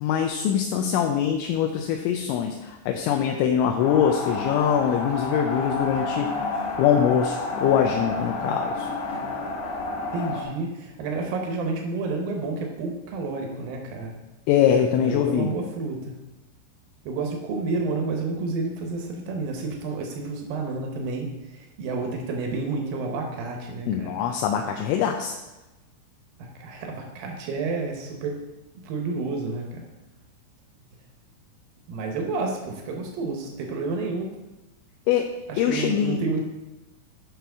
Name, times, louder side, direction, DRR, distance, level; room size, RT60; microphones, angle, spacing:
voice 1, 0.0-6.3 6.8-8.9 14.5-15.6 23.9-25.4 35.1-36.2, left 8 dB, 80° left, 3 dB, 2.9 m, -23 dB
sound 1, 3.8-10.4, left 3 dB, 65° left, 3.0 m, -30 dB
voice 2, 10.1-14.1 15.0-16.1 17.1-24.1 26.4-28.4 28.8-29.8 31.9-34.3 35.5-36.4, right 3 dB, 80° right, 2 dB, 2.1 m, -30 dB
13.0 x 6.0 x 3.5 m, 1.0 s
omnidirectional pair, 5.6 m